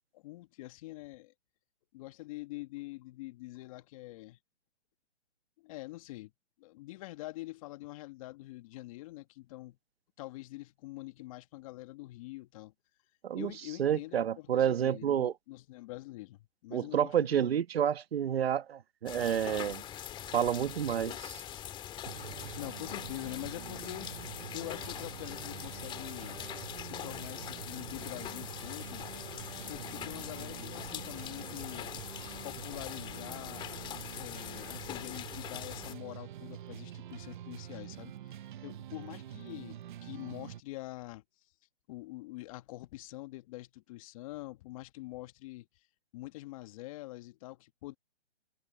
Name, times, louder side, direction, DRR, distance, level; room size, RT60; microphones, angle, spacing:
voice 1, 0.0-1.3 1.9-4.4 5.6-6.3 6.6-9.8 10.2-12.7 13.3-17.5 22.1-24.3 24.5-26.4 26.8-29.1 29.7-31.9 32.4-38.4 38.6-41.2 41.9-45.7 46.1-47.9, left 19 dB, 30° left, 1.5 m, -45 dB
voice 2, 13.8-15.3 16.7-19.8 20.3-21.4, right 9 dB, 60° right, 1.4 m, -29 dB
sound 1, 19.1-35.9, left 11 dB, 15° left, 2.4 m, -43 dB
sound 2, 22.0-40.6, right 11 dB, 45° right, 1.1 m, -46 dB
hypercardioid pair, 150°, 34 cm